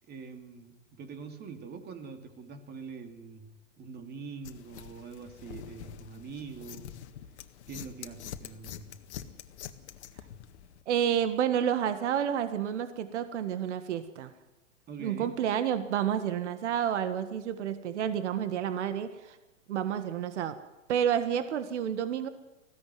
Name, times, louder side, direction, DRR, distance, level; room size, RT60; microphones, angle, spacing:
voice 1, 0.1-7.0 7.7-9.0 14.9-15.4, right 5 dB, 25° right, 7 dB, 2.9 m, -44 dB
sound 1, 4.4-10.8, left 10 dB, 60° left, 1.8 m, -45 dB
voice 2, 10.9-14.3 15.0-19.4 19.7-20.6 20.9-22.3, right 9 dB, 65° right, 11 dB, 1.7 m, -30 dB
20.5 x 16.0 x 9.4 m, 1.0 s
hypercardioid pair, 120°, 37 cm